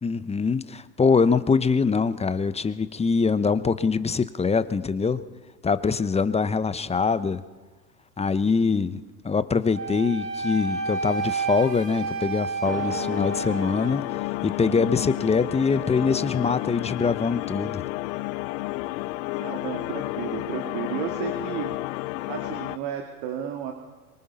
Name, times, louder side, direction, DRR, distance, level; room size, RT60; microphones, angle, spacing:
voice 1, 0.0-5.2 5.6-7.4 8.2-14.0 14.4-17.8, left 5 dB, 15° left, 13 dB, 0.9 m, -23 dB
Wind instrument woodwind instrument, 9.7-14.0, right 4 dB, 85° right, 3.4 m, -30 dB
sound 1, 12.6-22.8, left 20 dB, 55° left, 0.8 m, -31 dB
voice 2, 19.4-22.0 22.3-23.7, right 9 dB, 55° right, 3 dB, 2.6 m, -33 dB
24.0 x 23.0 x 5.7 m, 1.3 s
hypercardioid pair, 95°, 47 cm